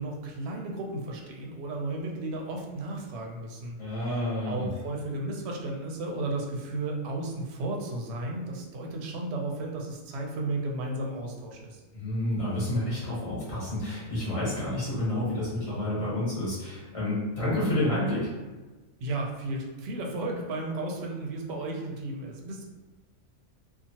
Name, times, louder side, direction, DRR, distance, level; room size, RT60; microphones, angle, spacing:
voice 1, 0.0-11.8 19.0-22.7, right 2 dB, 65° right, 0 dB, 0.7 m, -34 dB
voice 2, 3.8-4.7 11.9-18.3, left 1 dB, 25° left, -9 dB, 1.1 m, -29 dB
2.8 x 2.4 x 2.7 m, 1.2 s
omnidirectional pair, 1.4 m